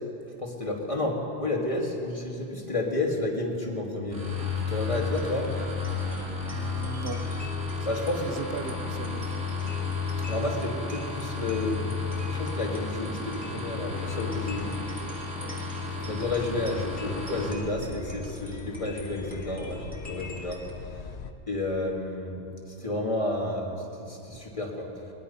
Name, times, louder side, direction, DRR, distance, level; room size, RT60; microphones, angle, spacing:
voice 1, 0.4-4.2 4.7-5.5 7.9-8.3 10.3-14.7 16.0-20.7 21.5-22.3 22.8-23.8 24.1-24.9, left 2 dB, 25° left, -1 dB, 2.7 m, -31 dB
sound 1, 4.1-17.5, left 4 dB, 80° right, 3.5 m, -32 dB
sound 2, 5.0-20.7, equal, 5° left, 2.8 m, -45 dB
voice 2, 6.5-7.2 7.8-9.6 14.3-14.9 17.6-18.2 19.8-20.0, right 6 dB, 50° right, 9 dB, 1.1 m, -39 dB
sound 3, 16.0-21.3, left 6 dB, 60° left, 1.1 m, -42 dB
22.5 x 20.5 x 5.7 m, 2.8 s
omnidirectional pair, 1.3 m